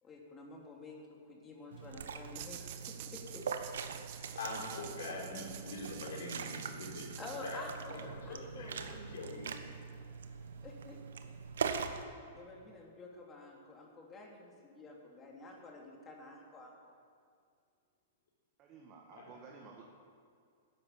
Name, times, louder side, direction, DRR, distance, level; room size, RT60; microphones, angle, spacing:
voice 1, 0.0-2.8 3.3-3.4 4.3-4.4 7.2-9.0 10.6-11.0 11.8-12.1 12.3-16.7, left 3 dB, 20° left, -1 dB, 3.0 m, -50 dB
Liquid, 1.7-12.0, right 6 dB, 80° right, 1.1 m, -42 dB
sound 1, 2.3-8.0, right 11 dB, 50° right, 1.1 m, -50 dB
voice 2, 4.4-7.1 7.4-7.6 8.0-9.5 19.1-19.3, left 2 dB, 75° left, -1 dB, 3.9 m, -43 dB
voice 3, 18.6-19.8, right 5 dB, 35° right, -1 dB, 1.8 m, -53 dB
13.0 x 10.5 x 7.3 m, 2.3 s
hypercardioid pair, 125°, 0 cm